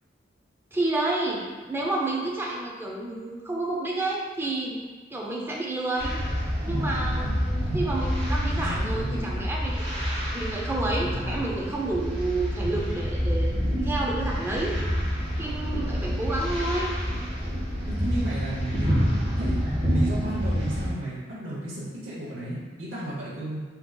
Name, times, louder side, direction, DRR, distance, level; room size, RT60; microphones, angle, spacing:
voice 1, 0.7-6.2 6.6-10.0 10.3-13.6 13.8-14.8 15.4-16.9, right 2 dB, 10° right, -3 dB, 0.4 m, -30 dB
sound 1, 6.0-20.9, equal, 30° right, 1.1 m, -27 dB
voice 2, 8.6-9.5 17.9-19.1 19.4-19.6 19.9-23.6, right 1 dB, 75° right, -7 dB, 0.9 m, -34 dB
3.7 x 2.7 x 2.3 m, 1.4 s
head